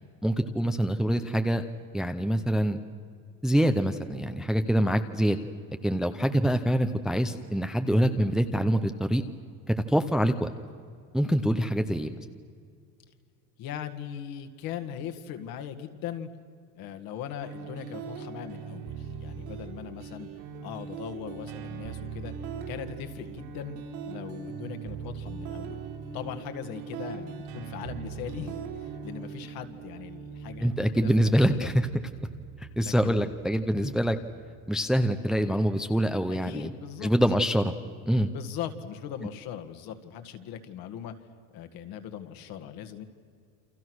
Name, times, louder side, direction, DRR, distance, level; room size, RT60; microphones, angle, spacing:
voice 1, 0.2-1.6 1.9-2.8 3.4-5.4 5.8-9.2 9.7-10.5 11.1-12.1 30.6-31.9 32.8-34.2 34.7-36.7 37.0-37.7 38.1-38.3, equal, ahead, 8 dB, 0.7 m, -25 dB
voice 2, 13.6-16.3 16.8-20.3 20.6-22.3 22.7-23.8 24.1-25.8 26.1-31.1 31.4-31.7 32.7-33.3 33.8-33.9 36.3-37.1 38.3-41.1 41.5-43.0, left 9 dB, 55° left, 8 dB, 2.1 m, -39 dB
sound 1, 17.4-35.4, right 6 dB, 75° right, 4.6 m, -40 dB
29.0 x 26.5 x 6.4 m, 2.2 s
supercardioid pair, 140°, 44 cm